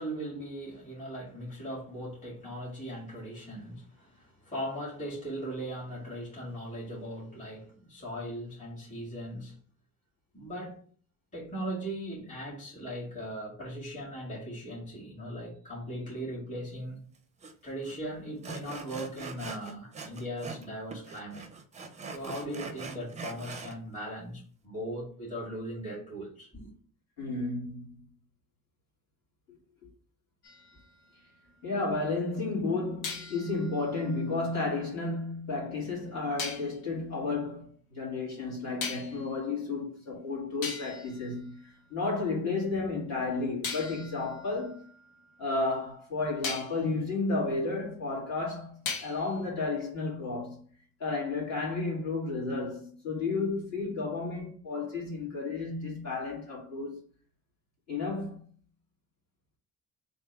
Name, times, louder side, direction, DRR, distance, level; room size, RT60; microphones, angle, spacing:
voice 1, 0.0-9.5 10.3-10.8 11.3-17.0 17.6-21.5 22.1-26.7, equal, 20° left, 1.9 m, -39 dB
Sawing, 17.4-17.5 17.8-18.0 18.4-20.7 20.9-23.8, right 4 dB, 20° right, 0.5 m, -42 dB
voice 2, 27.2-28.0 31.6-44.9 45.4-50.6 51.0-57.0 57.9-58.5, left 3 dB, 50° left, 2.0 m, -32 dB
sound 1, 30.4-31.9 33.0-35.2 36.4-36.8 38.8-39.3 40.1-40.2 40.6-42.2 43.6-45.8 46.4-46.9 48.9-49.4, left 5 dB, 90° left, 1.0 m, -41 dB
3.4 x 2.7 x 4.5 m
cardioid pair, 160°, 35 cm